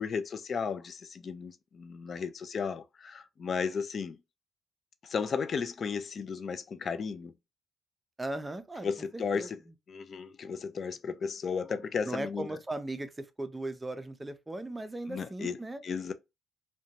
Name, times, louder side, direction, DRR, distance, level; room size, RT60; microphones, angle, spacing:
voice 1, 0.0-4.2 5.0-7.3 8.8-9.6 9.9-12.6 15.1-15.6 15.8-16.1, left 6 dB, 50° left, 0.4 m, -34 dB
voice 2, 8.2-9.5 12.0-15.8, right 2 dB, 15° right, 0.4 m, -38 dB
2.6 x 2.2 x 2.8 m
cardioid pair, 90°, 0 cm